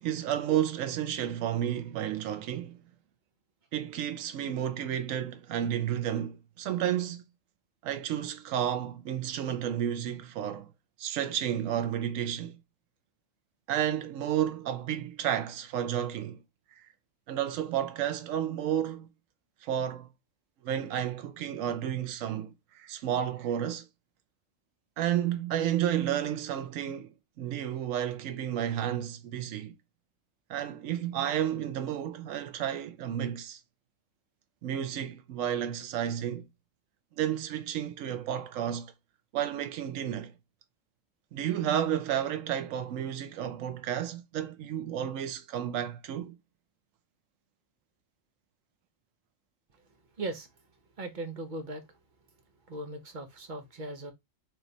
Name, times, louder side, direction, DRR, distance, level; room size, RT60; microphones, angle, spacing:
voice 1, 0.0-2.8 3.7-7.2 7.8-10.7 11.0-12.6 13.7-16.4 16.7-16.9 17.3-19.1 19.6-20.1 20.6-23.9 25.0-29.8 30.5-33.6 34.6-36.5 37.2-38.9 39.3-40.3 41.3-46.4, right 10 dB, 85° right, 1.0 m, -31 dB
voice 2, 50.2-50.5 51.0-52.0 52.7-54.1, right 2 dB, 40° right, 0.9 m, -38 dB
3.5 x 3.0 x 3.9 m
omnidirectional pair, 1.3 m